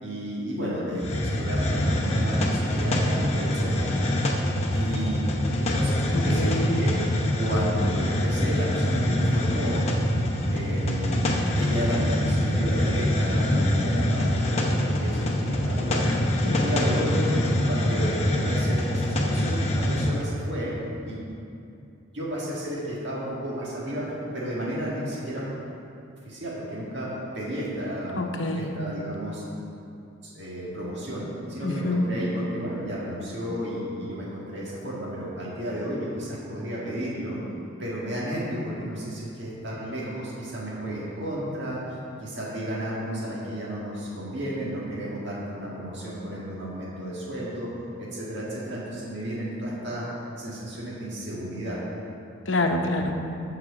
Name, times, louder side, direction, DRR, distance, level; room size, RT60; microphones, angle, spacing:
voice 1, 0.0-3.9 4.7-5.2 5.6-6.9 7.4-9.8 10.5-16.0 16.4-20.7 21.0-21.2 22.1-24.1 24.3-25.4 26.2-27.1 27.3-28.2 28.5-29.4 30.2-37.4 37.8-47.7 48.0-50.1 50.4-51.8, equal, 60° right, -7 dB, 1.9 m, -32 dB
Hiss, 1.0-20.2, left 1 dB, 30° left, 0.8 m, -24 dB
voice 2, 6.1-6.8 28.2-28.7 31.6-32.1 52.5-53.1, left 2 dB, 70° left, 3 dB, 0.9 m, -26 dB
13.5 x 4.8 x 4.9 m, 2.6 s
head